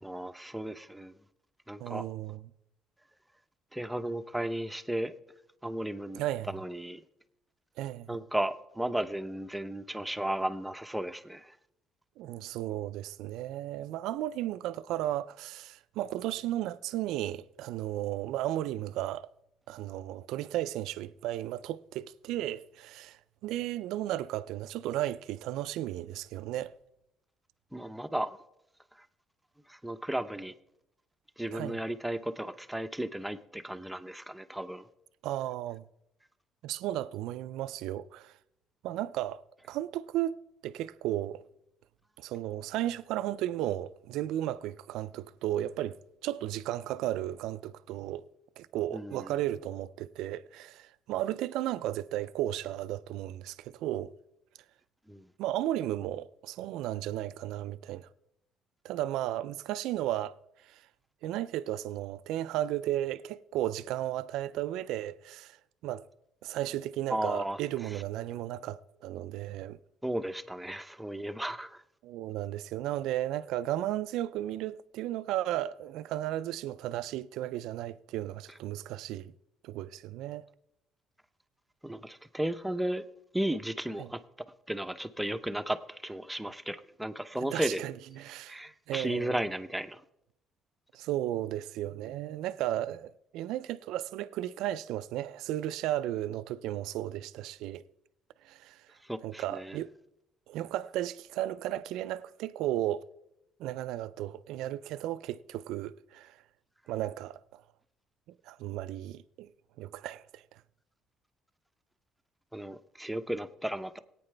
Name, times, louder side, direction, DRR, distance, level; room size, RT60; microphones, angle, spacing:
voice 1, 0.0-1.1 1.7-2.0 3.7-5.1 5.6-6.2 6.5-7.0 8.1-11.5 27.7-28.4 29.7-30.5 31.4-34.9 48.9-49.4 55.1-55.3 67.1-67.6 67.9-68.0 70.0-71.8 81.8-83.0 83.3-84.2 84.7-87.8 88.5-90.0 99.0-99.8 112.5-114.0, right 1 dB, 5° right, 0.7 m, -34 dB
voice 2, 1.8-2.4 6.2-6.5 7.8-8.2 12.2-19.3 19.7-26.7 31.5-31.8 35.2-35.8 36.6-38.3 38.8-39.4 39.7-40.4 40.6-41.4 42.2-46.0 46.2-48.3 48.6-54.1 55.4-58.1 58.8-60.3 60.6-60.8 61.2-65.6 65.8-66.0 66.4-69.8 72.0-79.3 79.6-80.5 84.0-84.1 87.4-88.6 88.9-89.4 90.9-97.8 98.4-98.8 99.2-99.9 100.5-103.0 103.6-106.4 106.9-107.6 108.5-109.5 109.8-110.4, right 13 dB, 85° right, 0.3 m, -34 dB
18.5 x 8.9 x 3.3 m
cardioid pair, 95°, 0 cm